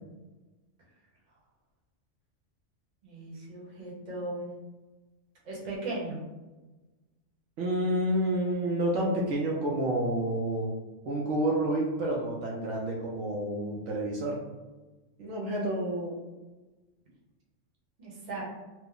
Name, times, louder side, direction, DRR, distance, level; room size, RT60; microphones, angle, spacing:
voice 1, 3.0-4.5 5.4-6.2 18.0-18.4, right 2 dB, 40° right, -4 dB, 0.9 m, -37 dB
voice 2, 7.6-10.7 11.1-14.4 15.2-16.1, right 1 dB, 75° right, -2 dB, 0.9 m, -29 dB
2.9 x 2.0 x 3.6 m, 1.2 s
omnidirectional pair, 1.3 m